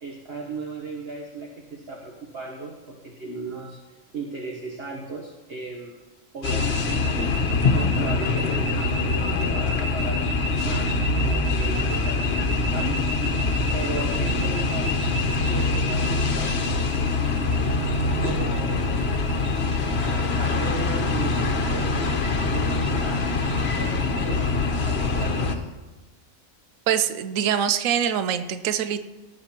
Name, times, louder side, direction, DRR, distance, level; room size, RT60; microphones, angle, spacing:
voice 1, 0.0-3.8 4.1-6.0 6.3-7.5 7.7-10.3 10.6-13.4 13.7-17.7 18.2-19.0 20.2-23.2 23.8-24.5 24.8-25.6, right 3 dB, 45° right, -1 dB, 1.6 m, -37 dB
sound 1, 6.4-25.6, left 3 dB, 50° left, 1.3 m, -24 dB
voice 2, 26.9-29.0, right 9 dB, 70° right, 11 dB, 1.1 m, -24 dB
18.0 x 7.8 x 4.4 m, 1.2 s
omnidirectional pair, 1.5 m